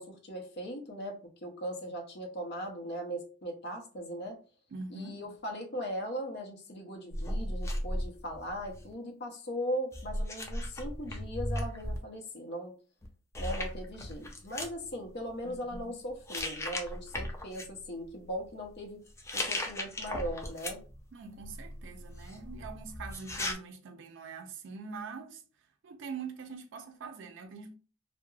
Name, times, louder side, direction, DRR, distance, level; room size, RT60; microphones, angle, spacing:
voice 1, 0.0-4.4 4.9-12.7 13.4-19.0 19.3-20.8, equal, 55° left, 0.6 m, -39 dB
voice 2, 4.7-5.2 15.5-16.0 21.1-25.4 25.8-27.7, right 5 dB, 60° right, 0.4 m, -44 dB
sound 1, 7.1-8.9 9.9-12.0 13.0-13.1 13.3-14.7 15.5-15.8 16.3-17.6 19.1-21.0 21.4-23.5, left 1 dB, 15° left, 0.4 m, -36 dB
2.3 x 2.0 x 3.1 m
head